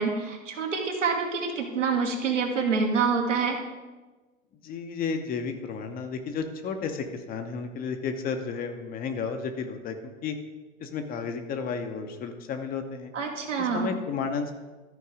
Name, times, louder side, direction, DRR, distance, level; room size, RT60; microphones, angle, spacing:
voice 1, 0.0-3.6 13.1-13.9, right 5 dB, 75° right, 2 dB, 1.7 m, -26 dB
voice 2, 4.6-10.4 10.8-13.1 13.6-14.5, left 5 dB, 25° left, 6 dB, 0.7 m, -32 dB
13.0 x 4.6 x 4.9 m, 1.2 s
figure-of-eight pair, 100°, 37 cm